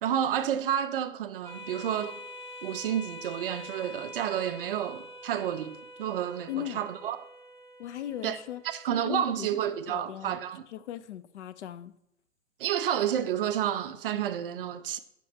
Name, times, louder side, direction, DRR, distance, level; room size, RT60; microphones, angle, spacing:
voice 1, 0.0-2.2 2.6-7.2 8.2-8.4 8.6-10.6 12.6-15.0, right 10 dB, 45° right, 0.4 m, -30 dB
sound 1, 1.4-10.4, left 1 dB, 5° left, 1.3 m, -46 dB
voice 2, 6.5-6.9 7.8-8.6 9.0-9.5 9.9-10.4 10.7-11.9, left 12 dB, 60° left, 0.5 m, -37 dB
6.9 x 5.9 x 3.1 m
hypercardioid pair, 135°, 40 cm